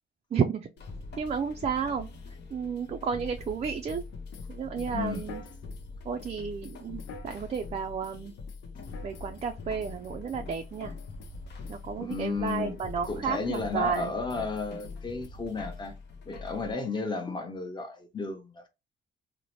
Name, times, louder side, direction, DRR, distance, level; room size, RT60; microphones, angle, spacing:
voice 1, 0.3-0.7 1.2-2.1 2.5-4.0 4.5-5.4 6.0-8.3 9.0-10.9 11.7-14.1, right 6 dB, 35° right, 0.4 m, -32 dB
sound 1, 0.8-16.7, left 3 dB, 60° left, 0.7 m, -43 dB
sound 2, 3.4-5.9 6.2-7.7 8.0-8.2 8.5-9.5 9.8-11.4 11.6-11.8 12.1-13.2 13.5-15.3, left 5 dB, 90° left, 0.4 m, -50 dB
voice 2, 4.9-5.2 12.0-12.8 13.1-15.9 16.2-18.7, left 4 dB, 20° left, 0.8 m, -33 dB
2.8 x 2.1 x 3.0 m
cardioid pair, 90°, 20 cm